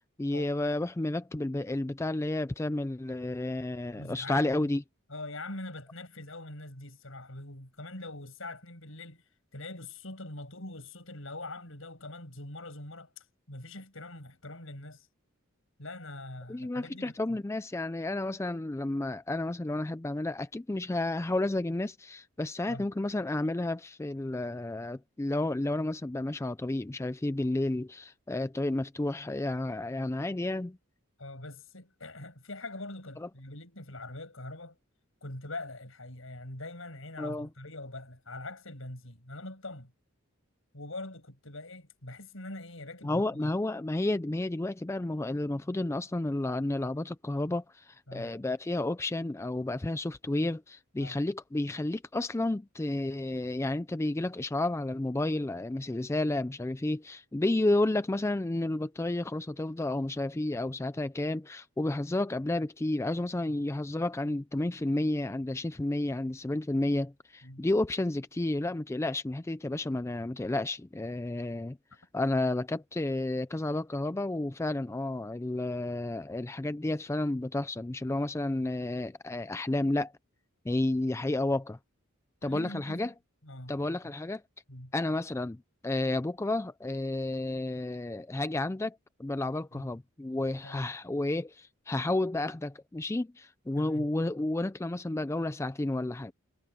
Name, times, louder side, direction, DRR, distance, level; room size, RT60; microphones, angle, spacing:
voice 1, 0.2-4.8 16.5-30.8 33.2-33.3 37.2-37.5 43.0-71.8 72.1-80.1 80.6-81.8 82.4-83.1 83.7-84.4 84.9-96.3, left 2 dB, 15° left, 0.4 m, -31 dB
voice 2, 3.9-4.5 5.1-15.1 15.8-17.4 22.7-22.9 31.2-34.8 35.2-39.9 40.7-43.5 48.1-48.3 51.0-51.2 67.4-67.6 82.4-83.1 83.4-83.7 84.7-84.9 89.7-89.9 90.6-90.8 93.8-94.1, left 2 dB, 70° left, 7.1 m, -43 dB
head